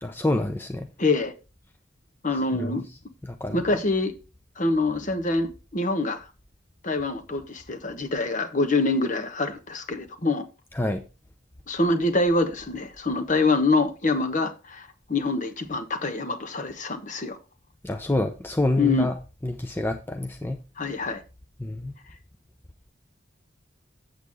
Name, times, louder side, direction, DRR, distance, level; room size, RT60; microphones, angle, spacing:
voice 1, 0.0-0.9 2.5-2.8 3.2-3.6 10.7-11.0 17.8-19.1 19.4-20.6 21.6-21.9, left 1 dB, 10° left, 0.7 m, -27 dB
voice 2, 1.0-1.3 2.2-2.8 3.5-4.1 4.6-6.2 6.8-10.5 11.7-17.4 18.8-19.1 20.8-21.2, left 2 dB, 40° left, 1.2 m, -25 dB
8.1 x 8.0 x 3.5 m
head